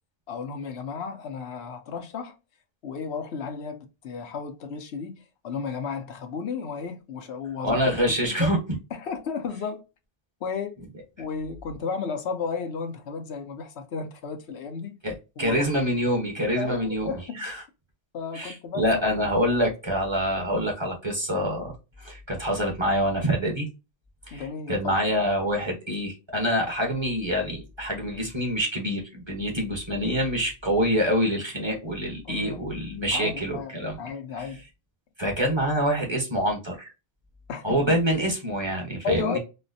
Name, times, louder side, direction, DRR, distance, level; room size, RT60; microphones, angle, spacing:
voice 1, 0.3-2.3 2.8-8.5 8.9-9.8 10.4-10.8 11.2-15.0 15.4-15.7 16.6-17.4 18.1-19.6 24.3-25.0 32.2-32.6 33.1-33.7 34.0-34.6 37.5-38.0 39.0-39.4, left 5 dB, 80° left, 1.0 m, -33 dB
voice 2, 7.6-8.6 15.0-17.1 17.4-17.6 18.3-21.7 22.0-23.7 24.3-34.0 35.2-36.9 37.6-39.4, equal, 25° right, 1.0 m, -26 dB
4.1 x 2.1 x 2.6 m
omnidirectional pair, 1.1 m